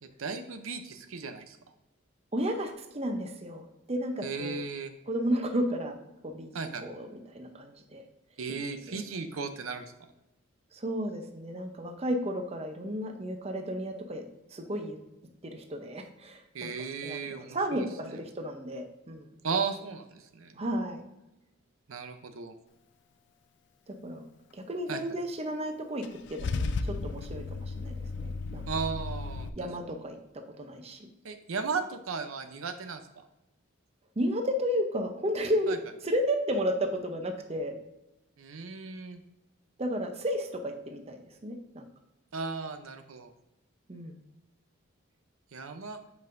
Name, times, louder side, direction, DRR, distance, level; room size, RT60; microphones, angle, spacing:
voice 1, 0.0-1.6 4.2-4.9 6.5-6.8 8.4-9.9 16.5-18.2 19.4-20.5 21.9-22.5 24.9-25.2 28.7-29.5 31.2-33.2 35.7-35.8 38.4-39.2 42.3-43.3 45.5-46.0, right 5 dB, 85° right, 8 dB, 0.6 m, -36 dB
voice 2, 2.3-4.6 5.1-6.0 6.2-6.5 6.8-8.0 8.9-9.0 10.7-14.2 14.5-15.0 15.4-19.3 20.6-21.0 23.9-24.3 24.5-26.0 26.3-28.6 29.6-30.2 30.6-31.1 34.2-37.8 39.8-41.9 43.9-44.2, equal, 30° right, 5 dB, 0.7 m, -33 dB
Car / Engine starting / Idling, 26.0-29.5, left 3 dB, 55° left, 0.4 m, -34 dB
8.0 x 5.3 x 2.6 m, 0.93 s
head